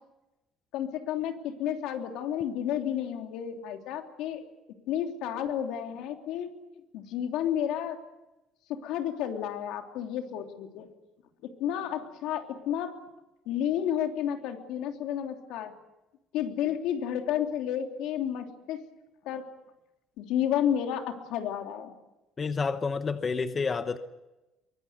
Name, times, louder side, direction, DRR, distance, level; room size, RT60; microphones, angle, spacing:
voice 1, 0.7-4.4 4.9-6.5 6.9-8.0 8.7-10.9 11.4-13.0 13.4-15.7 16.3-18.8 19.2-19.5 20.2-21.9, left 10 dB, 90° left, 3.2 m, -31 dB
voice 2, 22.4-24.0, left 4 dB, 20° left, 1.0 m, -29 dB
23.5 x 22.5 x 8.2 m
cardioid pair, 170°, 0 cm